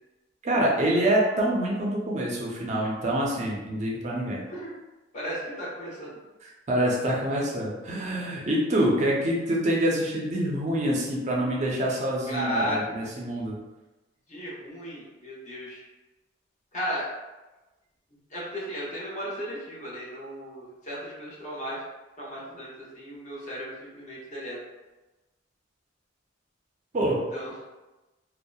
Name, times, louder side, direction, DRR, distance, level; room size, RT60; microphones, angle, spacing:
voice 1, 0.4-4.4 6.4-13.6 26.9-27.2, right 1 dB, 40° right, -3 dB, 0.4 m, -26 dB
voice 2, 5.1-6.1 12.3-12.8 14.3-15.8 16.7-17.1 18.3-21.8 22.2-24.6 27.3-27.7, equal, 40° left, -7 dB, 0.8 m, -35 dB
2.7 x 2.0 x 2.2 m, 1.1 s
head